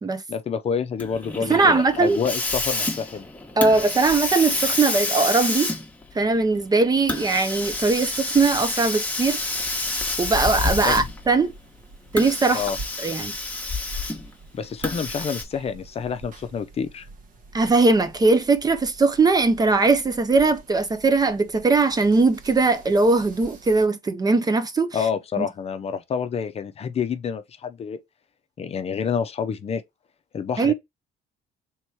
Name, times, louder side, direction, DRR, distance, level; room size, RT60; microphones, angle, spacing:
voice 1, 0.3-3.3 10.8-11.1 12.5-12.8 14.5-17.1 24.9-28.0 28.6-29.8 30.3-30.7, left 6 dB, 35° left, 0.6 m, -28 dB
Hiss, 1.0-11.3 12.1-14.3 14.8-15.4, left 2 dB, 10° left, 1.0 m, -28 dB
voice 2, 1.4-2.2 3.6-5.7 6.1-9.4 10.2-11.5 12.1-12.6 13.0-13.3 17.5-25.0 25.4-25.5 30.6-30.7, right 3 dB, 25° right, 0.6 m, -20 dB
sound 1, 7.5-23.9, right 3 dB, 50° right, 1.2 m, -46 dB
3.5 x 3.0 x 4.6 m
cardioid pair, 110°, 17 cm